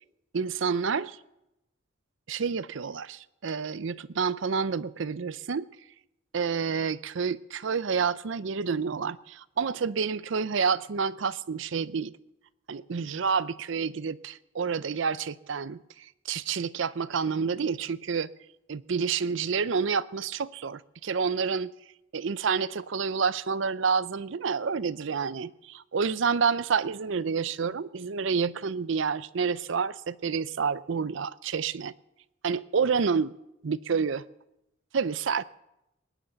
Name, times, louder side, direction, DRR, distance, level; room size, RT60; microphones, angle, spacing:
voice 1, 0.3-1.2 2.3-5.7 6.3-12.2 12.7-18.3 18.7-21.7 22.1-31.9 32.4-33.3 33.6-34.2 34.9-35.4, right 5 dB, 65° right, 0.5 m, -29 dB
20.0 x 10.5 x 6.7 m
head